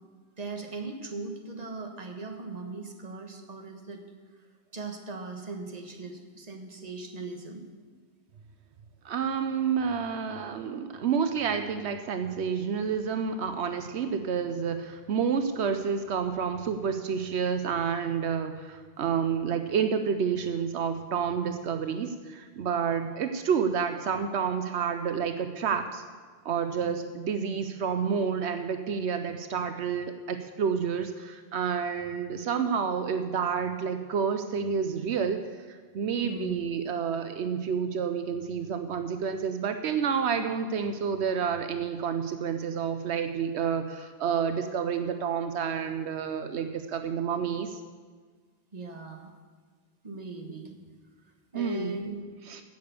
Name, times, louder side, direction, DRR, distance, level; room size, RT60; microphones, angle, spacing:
voice 1, 0.4-4.0 4.7-7.6 21.4-21.6 26.8-27.0 32.5-32.6 36.2-36.7 48.7-49.3 50.0-50.9 51.2-52.2, right 3 dB, 35° right, 3 dB, 1.5 m, -39 dB
voice 2, 9.0-26.0 26.4-35.4 35.7-47.8 51.5-51.9 52.5-52.6, right 6 dB, 80° right, 8 dB, 1.0 m, -29 dB
16.0 x 6.8 x 6.9 m, 1.5 s
omnidirectional pair, 1.1 m